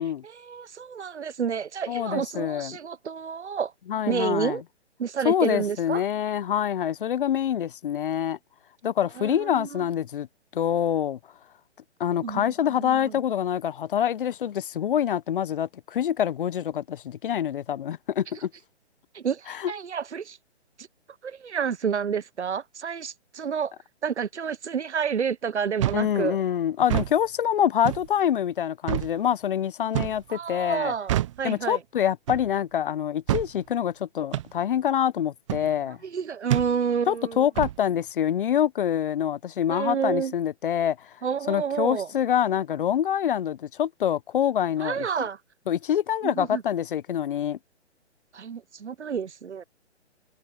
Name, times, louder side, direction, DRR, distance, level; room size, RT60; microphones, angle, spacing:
voice 1, 0.2-3.7 4.1-4.6 5.0-6.0 9.2-9.7 12.2-12.5 12.8-13.1 19.1-20.4 20.8-20.9 21.2-23.7 24.0-26.4 30.3-31.8 36.0-37.5 39.7-40.3 41.2-42.1 44.8-45.4 46.2-46.6 48.3-49.6, right 7 dB, 75° right, 1.1 m, -29 dB
voice 2, 1.9-2.8 3.9-4.6 5.2-8.4 8.8-10.3 10.5-11.2 12.0-18.5 19.5-19.7 25.9-30.9 31.4-36.0 37.1-41.0 41.5-45.1 45.7-47.6, left 9 dB, 50° left, 1.0 m, -26 dB
sound 1, 25.8-26.1 26.8-27.1 27.8-28.1 28.9-29.1 29.9-30.2 31.1-31.4 32.3-32.5 33.3-33.5 34.3-34.5 35.5-35.7 36.5-36.7 37.6-37.8, right 13 dB, 25° right, 0.7 m, -27 dB
figure-of-eight pair, 135°, 35 cm